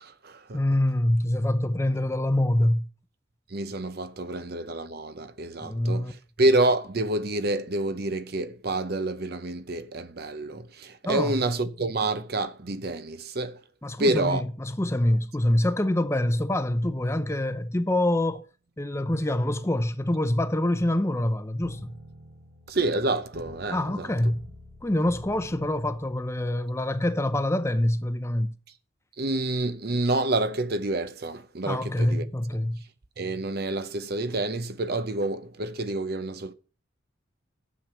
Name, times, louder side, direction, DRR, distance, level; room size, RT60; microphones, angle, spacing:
voice 1, 0.0-0.6 3.5-13.6 14.0-14.4 22.7-24.1 29.2-32.6 33.2-36.5, right 2 dB, 55° right, 0.8 m, -28 dB
voice 2, 0.5-2.8 5.6-6.1 11.0-11.3 13.8-18.4 18.8-21.9 23.7-24.4 24.8-28.5 31.7-32.8, left 1 dB, 15° left, 0.7 m, -25 dB
sound 1, 21.6-27.1, equal, 85° right, 6.5 m, -48 dB
12.0 x 7.6 x 5.8 m
head